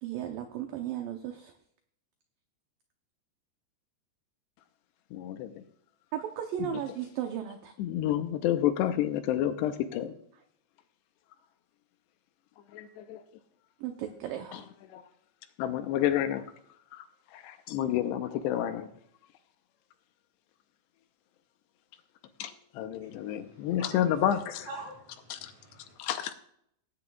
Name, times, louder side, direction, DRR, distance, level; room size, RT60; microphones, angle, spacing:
voice 1, 0.0-1.5 6.1-7.7 13.8-14.7, right 10 dB, 80° right, 2.0 m, -35 dB
voice 2, 5.1-5.6 7.8-10.2 12.7-13.2 14.5-14.6 14.9-15.0 15.6-16.4 16.9-17.1 17.3-18.9 22.4-24.7 25.3-25.5 26.0-26.3, left 11 dB, 85° left, 2.8 m, -30 dB
voice 3, 23.0-24.0 24.3-24.4 24.7-25.9, right 2 dB, 45° right, 6.4 m, -46 dB
19.0 x 9.7 x 2.4 m
omnidirectional pair, 4.9 m